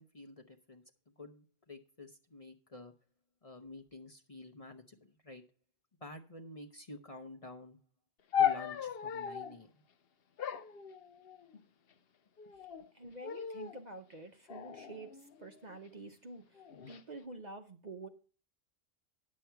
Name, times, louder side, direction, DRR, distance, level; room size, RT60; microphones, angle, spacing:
voice 1, 0.0-2.9 3.4-5.4 6.0-7.8 8.4-9.7, left 2 dB, 35° left, 3 dB, 0.8 m, -50 dB
sound 1, 8.3-9.6 10.4-11.6 12.4-12.9 13.2-13.8 14.5-15.8 16.6-17.0, left 9 dB, 55° left, 0.9 m, -36 dB
voice 2, 12.9-18.1, right 2 dB, 40° right, 5 dB, 0.8 m, -48 dB
10.5 x 7.6 x 4.6 m, 0.37 s
omnidirectional pair, 1.3 m